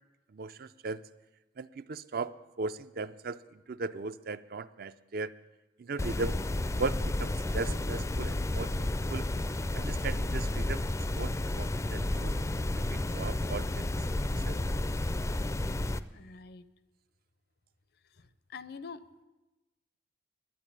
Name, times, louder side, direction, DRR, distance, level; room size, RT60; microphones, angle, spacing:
voice 1, 0.3-1.0 1.6-5.3 5.8-6.4 6.7-9.2 9.7-10.8 11.1-12.5 12.9-14.0 14.5-14.6, right 3 dB, 55° right, 13 dB, 0.5 m, -38 dB
sound 1, 6.0-16.0, left 1 dB, 15° left, 0.4 m, -31 dB
voice 2, 16.1-16.7 18.1-19.1, left 5 dB, 60° left, 15 dB, 0.6 m, -46 dB
11.0 x 8.9 x 9.9 m, 1.1 s
head